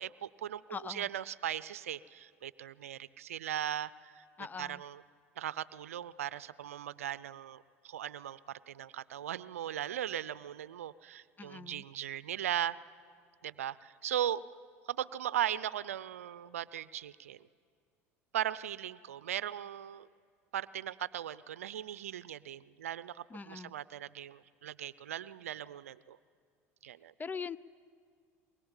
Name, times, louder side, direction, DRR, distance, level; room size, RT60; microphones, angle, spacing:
voice 1, 0.0-0.6 0.9-4.2 4.6-5.0 5.4-12.8 13.4-14.4 14.9-17.4 18.3-20.1 20.5-26.2 26.8-27.1, right 11 dB, 85° right, 18 dB, 0.5 m, -38 dB
voice 2, 0.7-1.1 4.4-4.8 11.4-11.8 23.3-23.7 27.2-27.6, left 5 dB, 25° left, 18 dB, 0.6 m, -42 dB
22.0 x 21.5 x 9.0 m, 2.1 s
hypercardioid pair, 80°, 7 cm